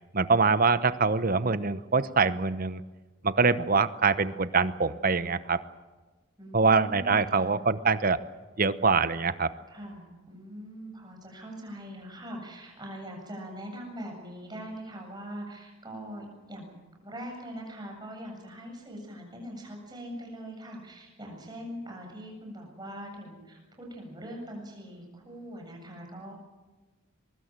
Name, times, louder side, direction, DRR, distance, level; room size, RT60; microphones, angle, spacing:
voice 1, 0.1-2.8 3.2-5.6 6.5-8.2 8.6-9.5, right 4 dB, 45° right, 13 dB, 0.9 m, -24 dB
voice 2, 6.4-7.5 9.7-26.3, equal, 20° right, 1 dB, 7.6 m, -42 dB
23.0 x 22.5 x 7.6 m, 1.2 s
head